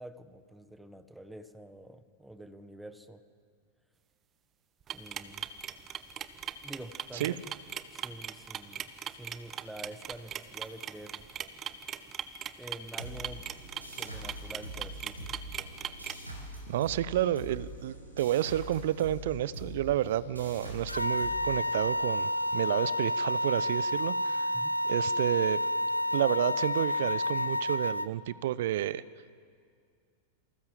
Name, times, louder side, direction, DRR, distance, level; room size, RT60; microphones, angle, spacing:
voice 1, 0.0-3.2 4.9-5.5 6.6-7.5 7.9-11.3 12.6-13.5 13.9-15.4 24.5-24.7, right 1 dB, 5° right, 10 dB, 1.5 m, -47 dB
sound 1, 4.9-16.1, right 9 dB, 30° right, 1.4 m, -39 dB
sound 2, 13.0-22.2, right 1 dB, 85° right, 6.1 m, -44 dB
voice 2, 16.7-24.5 24.8-25.6 26.1-29.0, right 12 dB, 55° right, 18 dB, 0.8 m, -30 dB
sound 3, 20.9-28.1, left 1 dB, 85° left, 0.8 m, -30 dB
28.0 x 25.0 x 7.7 m, 2.1 s
figure-of-eight pair, 90°, 0 cm